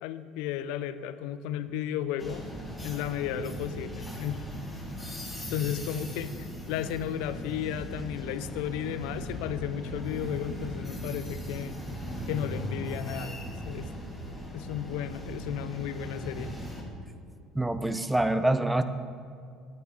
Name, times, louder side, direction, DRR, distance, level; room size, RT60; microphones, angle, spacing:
voice 1, 0.0-2.5 2.8-4.4 5.5-11.8 12.3-13.9 14.5-16.5, left 10 dB, 65° left, 13 dB, 0.4 m, -34 dB
sound 1, 2.2-16.8, equal, 10° left, 1.9 m, -38 dB
voice 2, 17.5-18.8, right 1 dB, 10° right, 10 dB, 0.6 m, -25 dB
9.7 x 9.0 x 4.2 m, 2.4 s
figure-of-eight pair, 65°, 0 cm